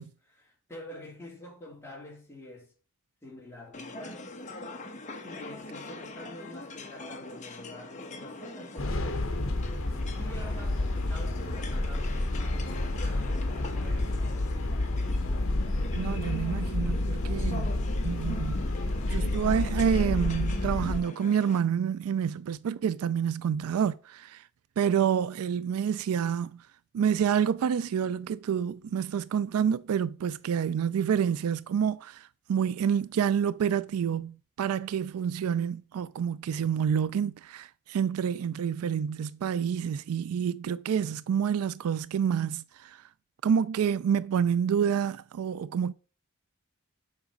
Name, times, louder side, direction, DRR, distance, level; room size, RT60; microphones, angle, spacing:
voice 1, 0.0-2.7 3.2-4.3 5.2-9.3 10.2-14.8, left 1 dB, 10° left, 2.8 m, -46 dB
sound 1, 3.7-21.6, left 2 dB, 35° left, 1.0 m, -43 dB
sound 2, 8.8-21.0, left 2 dB, 65° left, 1.1 m, -29 dB
voice 2, 15.9-17.8 18.0-18.6 19.1-24.4 24.8-26.6 26.9-43.0 43.4-45.9, right 8 dB, 85° right, 0.3 m, -28 dB
7.2 x 5.0 x 5.2 m
head